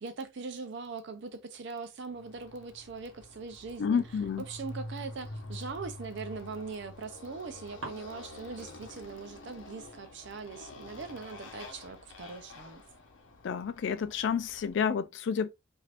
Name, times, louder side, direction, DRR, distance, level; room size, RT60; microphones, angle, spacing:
voice 1, 0.0-4.0 4.5-12.8, right 4 dB, 60° right, 0.5 m, -41 dB
Motorcycle, 2.2-14.9, left 2 dB, 80° left, 0.8 m, -47 dB
voice 2, 3.8-4.4 13.4-15.5, left 6 dB, 60° left, 0.3 m, -30 dB
sound 1, 5.2-6.0 6.5-7.4 7.8-13.3, right 2 dB, 85° right, 1.1 m, -53 dB
2.6 x 2.4 x 3.3 m
head